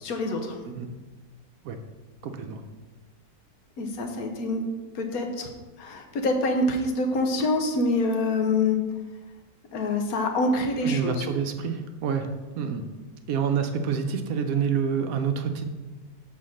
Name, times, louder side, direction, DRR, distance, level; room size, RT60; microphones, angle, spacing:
voice 1, 0.0-0.6 3.8-4.6 4.9-5.5 5.8-8.8 9.7-11.2, left 2 dB, 70° left, 4 dB, 1.2 m, -26 dB
voice 2, 2.2-2.6 10.8-12.3 12.6-12.8 13.3-15.7, right 7 dB, 70° right, 6 dB, 1.0 m, -27 dB
5.7 x 4.2 x 6.3 m, 1.3 s
omnidirectional pair, 1.7 m